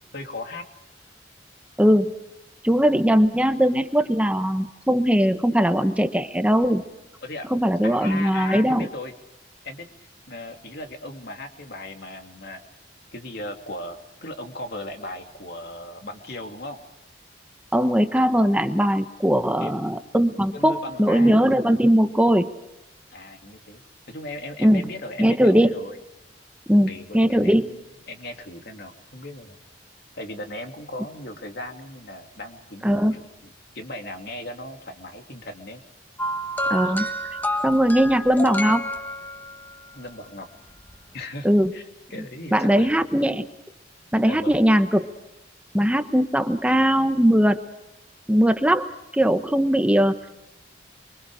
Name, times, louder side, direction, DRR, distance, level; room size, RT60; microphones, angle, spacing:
voice 1, 0.1-0.6 7.2-7.5 7.8-9.1 9.6-9.9 10.3-12.6 13.1-16.8 19.6-19.8 20.5-21.4 23.1-26.0 26.8-29.6 30.1-35.8 36.8-36.9 39.9-40.5 41.1-41.5 41.7-41.8 42.1-43.0 44.3-44.6, left 1 dB, 60° left, 4 dB, 2.9 m, -37 dB
voice 2, 2.6-6.8 7.5-8.9 17.7-22.5 24.6-24.8 25.2-25.7 26.7-27.6 32.8-33.2 36.7-37.1 37.6-38.9 41.4-41.7 42.5-43.5 44.1-45.1 45.7-47.6 48.3-48.9 49.1-50.3, equal, 5° right, 8 dB, 1.0 m, -20 dB
sound 1, 36.2-39.7 40.8-40.9, equal, 10° left, 1.6 m, -29 dB
29.5 x 24.0 x 5.0 m, 0.94 s
head